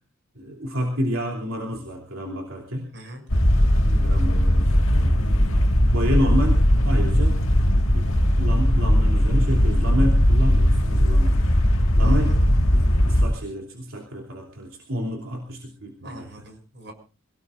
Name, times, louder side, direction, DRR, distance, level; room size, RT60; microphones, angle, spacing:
voice 1, 0.3-2.9 3.9-5.7 5.9-7.4 7.9-8.1 8.4-11.5 12.0-12.3 12.7-16.3, equal, 80° right, 0 dB, 3.1 m, -29 dB
sound 1, 3.3-13.3, equal, 75° left, 1.8 m, -19 dB
voice 2, 12.0-12.5 16.0-16.9, right 2 dB, 60° right, 5 dB, 6.7 m, -40 dB
27.0 x 18.5 x 2.5 m, 0.34 s
head